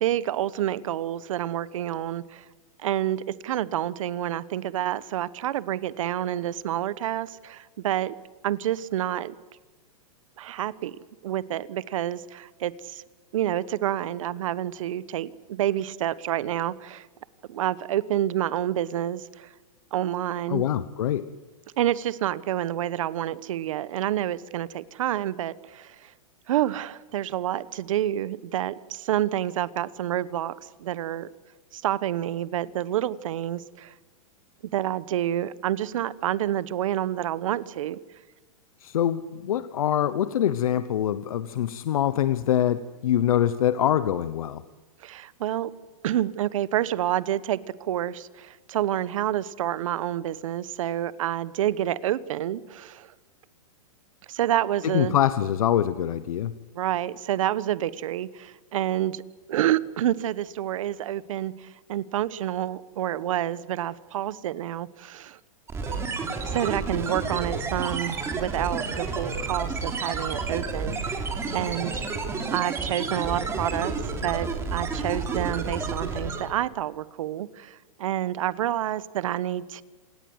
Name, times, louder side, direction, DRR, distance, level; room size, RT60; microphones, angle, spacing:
voice 1, 0.0-2.4 2.8-8.1 8.4-9.3 10.4-11.0 11.2-13.0 13.3-17.1 17.5-19.5 19.9-20.6 21.8-26.1 26.5-31.3 31.7-33.9 34.7-38.0 45.0-45.7 46.0-53.1 54.3-55.2 56.7-59.2 59.5-65.4 66.4-71.3 71.5-72.1 72.5-74.0 74.2-79.8, right 12 dB, 65° right, 17 dB, 1.1 m, -28 dB
voice 2, 20.5-21.3 38.8-44.6 54.8-56.5, left 10 dB, 75° left, 13 dB, 1.0 m, -24 dB
sound 1, 65.7-76.6, right 4 dB, 15° right, 3.3 m, -30 dB
27.5 x 18.0 x 8.0 m, 1.2 s
hypercardioid pair, 150°, 18 cm